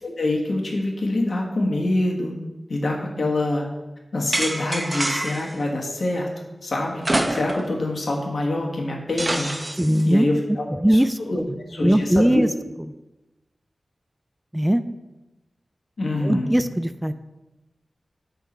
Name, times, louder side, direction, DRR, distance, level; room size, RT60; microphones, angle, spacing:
voice 1, 0.0-2.3 2.7-3.7 4.1-6.3 6.6-7.0 7.3-9.5 10.0-12.4 16.0-16.5, left 2 dB, 70° left, 0 dB, 1.5 m, -25 dB
sound 1, 4.3-5.5 7.0-7.8 8.1-8.2 9.2-10.0, right 1 dB, 30° right, 0.8 m, -26 dB
voice 2, 9.8-10.3 10.8-11.4 11.8-12.5 14.5-14.8 16.2-17.1, equal, 10° right, 11 dB, 0.3 m, -19 dB
10.0 x 3.8 x 4.2 m, 1.1 s
wide cardioid pair, 65°, 0 cm